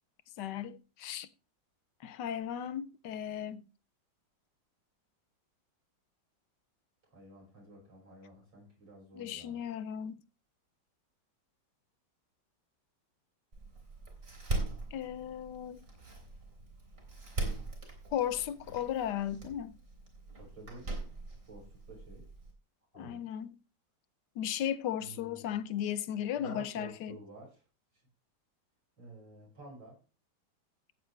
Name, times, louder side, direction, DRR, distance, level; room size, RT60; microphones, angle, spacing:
voice 1, 0.4-1.3 2.0-3.6 9.1-10.2 14.9-15.8 18.1-19.8 22.9-23.6 24.4-27.2, left 10 dB, 70° left, 1.3 m, -36 dB
voice 2, 7.0-9.6 20.3-20.9 21.5-22.3 22.9-23.3 25.0-25.5 26.3-27.6 27.9-28.0 29.0-30.0, right 2 dB, 80° right, 6.4 m, -51 dB
Door, 13.5-22.5, right 2 dB, 45° right, 3.7 m, -41 dB
15.0 x 8.5 x 3.3 m
omnidirectional pair, 2.0 m